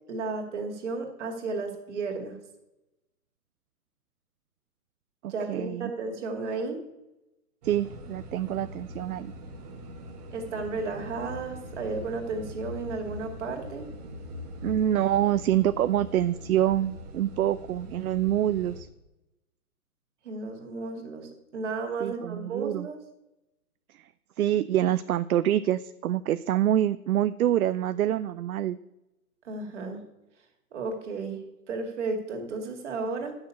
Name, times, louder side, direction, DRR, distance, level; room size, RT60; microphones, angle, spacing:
voice 1, 0.1-2.4 5.3-6.8 10.3-13.9 20.2-23.0 29.4-30.0 30.7-33.4, right 3 dB, 50° right, 3 dB, 2.4 m, -33 dB
voice 2, 5.2-5.9 7.6-9.3 14.6-18.9 22.0-22.9 24.4-28.8, right 11 dB, 70° right, 13 dB, 0.6 m, -26 dB
sound 1, 7.6-18.8, equal, 25° right, 1.3 m, -42 dB
9.7 x 6.5 x 8.4 m, 0.94 s
hypercardioid pair, 165°, 45 cm